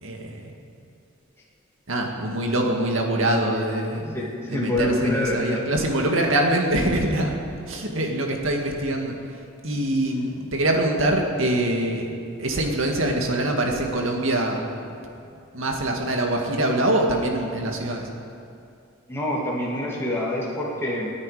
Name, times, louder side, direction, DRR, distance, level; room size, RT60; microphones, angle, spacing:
voice 1, 0.0-0.5 1.9-4.2 4.5-7.4 7.7-9.2 9.6-12.1 12.4-14.6 15.5-18.1, right 1 dB, 75° right, 1 dB, 2.1 m, -24 dB
voice 2, 4.1-5.7 19.1-21.1, left 1 dB, 10° left, -5 dB, 2.4 m, -26 dB
27.5 x 9.8 x 5.1 m, 2.5 s
head